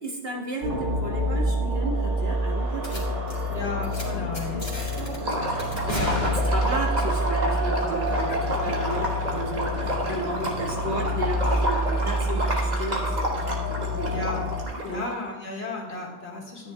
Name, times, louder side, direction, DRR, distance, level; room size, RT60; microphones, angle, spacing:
voice 1, 0.0-3.2 3.5-3.7 4.1-5.4 5.6-13.4 13.6-14.1 14.9-15.0, right 1 dB, 60° right, -2 dB, 2.0 m, -34 dB
sound 1, 0.6-14.7, equal, 85° right, 1.6 m, -27 dB
sound 2, 2.8-3.0 3.3-3.5 3.8-4.0 4.3-5.2 5.6-6.9, equal, 30° left, 2.5 m, -34 dB
voice 2, 3.5-4.6 5.9-6.3 8.3-8.4 8.8-9.1 14.0-14.4 14.8-16.7, left 2 dB, 65° left, -1 dB, 2.1 m, -34 dB
Liquid, 5.2-15.1, right 1 dB, 40° right, 1.5 m, -30 dB
13.0 x 9.8 x 2.3 m, 1.1 s
omnidirectional pair, 1.2 m